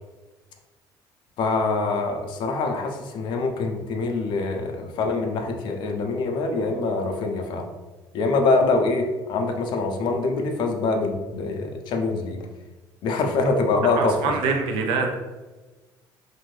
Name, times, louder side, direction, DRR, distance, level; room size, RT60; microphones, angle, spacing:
voice 1, 1.4-7.7 8.1-12.4 13.0-14.4, left 3 dB, 60° left, 3 dB, 0.5 m, -24 dB
voice 2, 14.0-15.2, right 4 dB, 80° right, 3 dB, 0.5 m, -24 dB
2.6 x 2.6 x 3.1 m, 1.2 s
cardioid pair, 125°, 9 cm